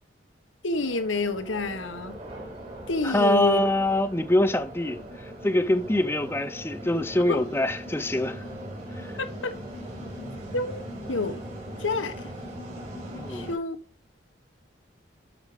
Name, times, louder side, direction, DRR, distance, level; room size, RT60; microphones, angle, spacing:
voice 1, 0.6-2.2 2.9-3.6 7.3-7.4 9.2-9.5 10.5-10.8 11.1-11.4 11.8-12.3 13.3-13.8, left 3 dB, 90° left, 1.5 m, -28 dB
sound 1, 0.7-13.6, equal, 35° right, 5.2 m, -40 dB
voice 2, 3.0-8.4 8.9-9.1 13.1-13.5, left 1 dB, 10° left, 0.6 m, -24 dB
11.5 x 6.6 x 5.2 m
head